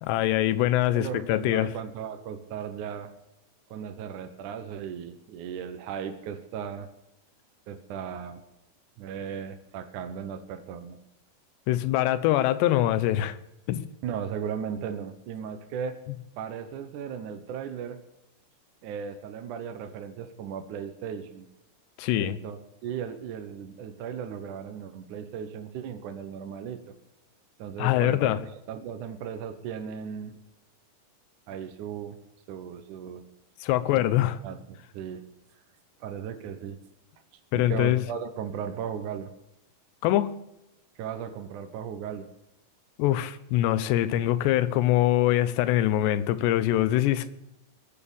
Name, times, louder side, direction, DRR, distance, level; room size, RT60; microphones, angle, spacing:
voice 1, 0.0-1.7 11.7-13.4 13.7-13.8 22.0-22.4 27.8-28.4 33.6-34.4 37.5-38.0 40.0-40.3 43.0-47.3, left 14 dB, 80° left, 3.0 m, -23 dB
voice 2, 0.9-3.1 3.7-6.9 7.7-8.4 9.0-11.0 14.0-16.0 16.4-18.0 18.8-21.5 22.2-26.8 27.6-28.3 28.7-30.4 31.5-32.2 32.5-33.3 33.9-35.2 36.0-36.8 37.5-39.3 41.0-42.3, right 8 dB, 70° right, 1.9 m, -36 dB
21.0 x 8.7 x 7.1 m
omnidirectional pair, 5.0 m